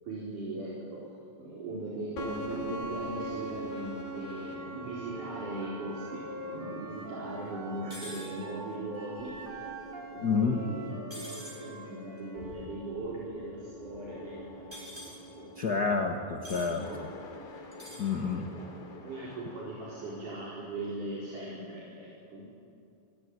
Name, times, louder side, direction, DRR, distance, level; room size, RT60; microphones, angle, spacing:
voice 1, 0.0-1.0 1.4-6.2 6.5-9.7 10.1-14.7 15.0-15.5 16.5-17.0 18.5-18.7 19.0-22.5, right 2 dB, 60° right, -6 dB, 5.8 m, -39 dB
sound 1, 2.2-20.5, right 1 dB, 80° left, 4.5 m, -44 dB
Wind instrument woodwind instrument, 5.1-8.7 8.9-12.8, right 1 dB, 30° right, 2.7 m, -46 dB
sound 2, 7.9-8.3 11.1-11.6 14.7-15.2 16.4-16.7 17.7-18.1, equal, 5° right, 6.2 m, -44 dB
voice 2, 10.2-10.6 15.6-16.9 18.0-18.5, left 5 dB, 55° left, 3 dB, 1.1 m, -29 dB
29.0 x 18.5 x 9.7 m, 2.4 s
omnidirectional pair, 4.1 m